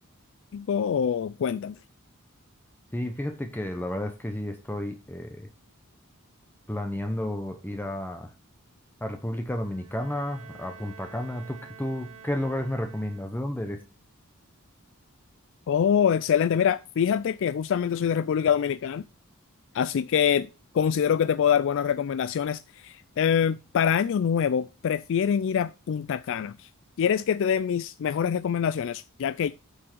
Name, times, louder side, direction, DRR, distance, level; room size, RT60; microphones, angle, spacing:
voice 1, 0.5-1.8 15.7-19.0 19.7-20.5 20.7-26.7 27.0-29.5, left 8 dB, 60° left, 0.3 m, -25 dB
voice 2, 2.9-5.5 6.7-8.3 9.0-13.8, left 1 dB, 10° left, 0.8 m, -32 dB
Bowed string instrument, 9.5-13.6, right 6 dB, 70° right, 1.4 m, -49 dB
8.2 x 6.2 x 4.5 m
head